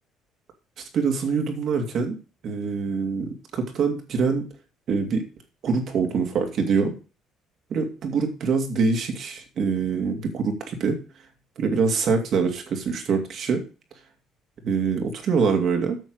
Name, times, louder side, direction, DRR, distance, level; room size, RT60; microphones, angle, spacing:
voice 1, 0.9-2.2 2.4-4.4 4.9-5.2 5.6-6.9 7.7-11.0 11.6-13.6 14.6-16.0, right 5 dB, 55° right, 4 dB, 2.8 m, -24 dB
9.2 x 6.5 x 6.4 m, 0.34 s
cardioid pair, 105°, 0 cm